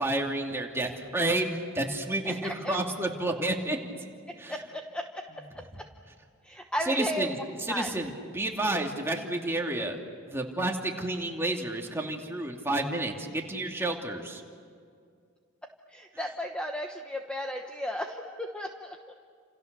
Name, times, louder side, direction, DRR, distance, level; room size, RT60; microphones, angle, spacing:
voice 1, 0.0-3.8 4.4-4.5 6.9-7.4 7.7-10.0 10.3-14.4, right 2 dB, 10° right, 1 dB, 2.6 m, -30 dB
voice 2, 2.2-2.8 4.3-5.9 6.4-7.3 7.7-7.9 15.9-19.1, equal, 5° left, 3 dB, 1.1 m, -35 dB
29.5 x 28.0 x 6.8 m, 2.2 s
head